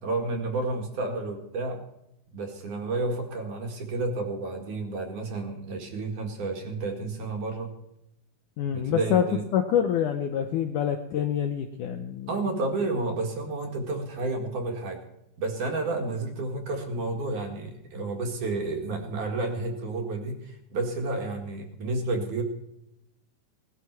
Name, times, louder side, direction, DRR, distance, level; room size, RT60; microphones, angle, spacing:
voice 1, 0.0-1.8 2.3-7.7 8.7-9.4 12.3-15.0 15.4-22.4, right 2 dB, 55° right, 2 dB, 3.1 m, -31 dB
voice 2, 8.6-9.3 9.5-12.4, left 9 dB, 75° left, 6 dB, 1.9 m, -26 dB
18.5 x 12.5 x 4.7 m, 0.85 s
omnidirectional pair, 4.6 m